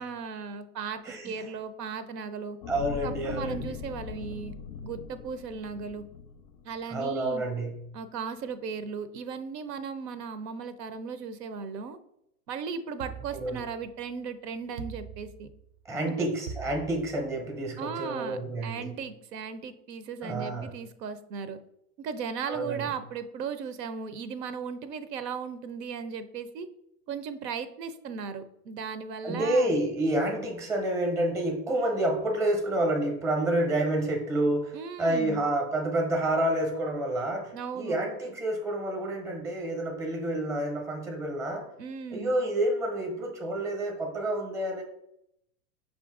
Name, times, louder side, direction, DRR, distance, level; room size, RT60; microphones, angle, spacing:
voice 1, 0.0-2.6 3.0-4.5 4.8-6.0 6.6-7.4 7.9-12.0 12.5-15.5 16.0-16.3 17.8-21.6 22.0-26.7 27.1-29.8 34.7-35.4 37.5-38.0 41.8-42.4, right 6 dB, 85° right, 12 dB, 0.7 m, -37 dB
voice 2, 1.0-1.5 2.7-3.8 6.9-7.8 13.3-13.6 15.8-18.9 20.2-20.7 22.5-22.9 29.2-41.7 42.1-44.8, right 1 dB, 5° right, 3 dB, 0.6 m, -29 dB
sound 1, 2.6-7.1 7.6-7.7, left 5 dB, 40° left, 0.4 m, -40 dB
sound 2, 13.0-14.1 14.8-15.8 16.5-17.6, right 7 dB, 50° right, 0.5 m, -42 dB
5.6 x 2.5 x 3.6 m, 0.78 s
hypercardioid pair, 125°, 48 cm